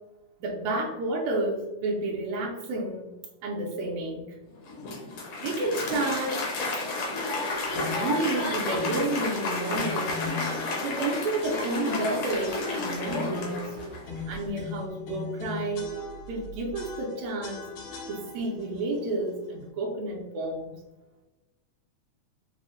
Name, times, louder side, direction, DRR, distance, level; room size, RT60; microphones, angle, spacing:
voice 1, 0.4-3.1 3.4-4.3 5.4-6.4 7.8-10.2 10.8-13.8 14.3-15.9 16.3-17.7 18.1-20.8, right 2 dB, 80° right, -3 dB, 1.7 m, -30 dB
Applause, 4.6-14.2, left 2 dB, 70° left, 1.5 m, -31 dB
sound 1, 7.7-8.2 8.7-9.1 9.7-11.1 11.4-12.0 12.4-13.5 14.0-16.4 16.7-18.6, left 5 dB, 90° left, 2.5 m, -39 dB
sound 2, 11.6-14.9, right 2 dB, 60° right, 0.9 m, -45 dB
5.5 x 2.0 x 2.5 m, 1.0 s
omnidirectional pair, 3.5 m